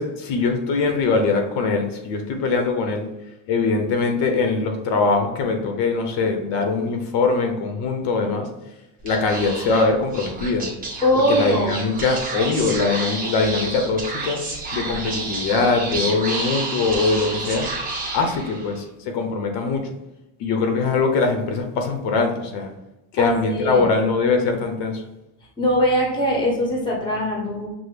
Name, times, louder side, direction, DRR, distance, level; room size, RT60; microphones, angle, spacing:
voice 1, 0.0-3.1 3.5-8.5 9.0-10.7 11.3-14.4 14.7-17.7 18.1-19.8 20.4-22.7 23.1-25.0, left 4 dB, 60° left, 4 dB, 0.8 m, -22 dB
Speech / Whispering, 9.0-18.8, right 3 dB, 20° right, 0.8 m, -30 dB
voice 2, 11.0-11.8 23.2-23.9 25.6-27.7, left 1 dB, 10° left, -2 dB, 0.7 m, -21 dB
6.0 x 2.0 x 3.3 m, 0.95 s
cardioid pair, 165°, 47 cm